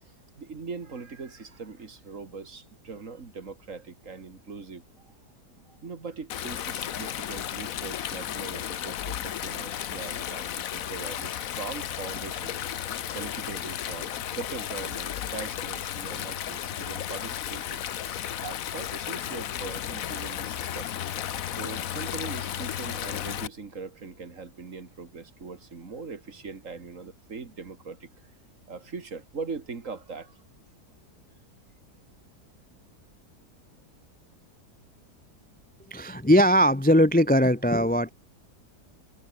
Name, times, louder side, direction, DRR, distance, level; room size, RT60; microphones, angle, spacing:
voice 1, 0.0-5.1 5.7-12.6 13.1-17.8 18.4-20.9 21.6-28.1 28.7-30.4, right 4 dB, 50° right, 2.4 m, -41 dB
Stream, 6.3-23.5, left 10 dB, 60° left, 1.2 m, -34 dB
sound 1, 6.8-12.5, right 2 dB, 80° right, 7.2 m, -57 dB
voice 2, 35.9-38.1, equal, 10° left, 0.6 m, -20 dB
omnidirectional pair, 1.8 m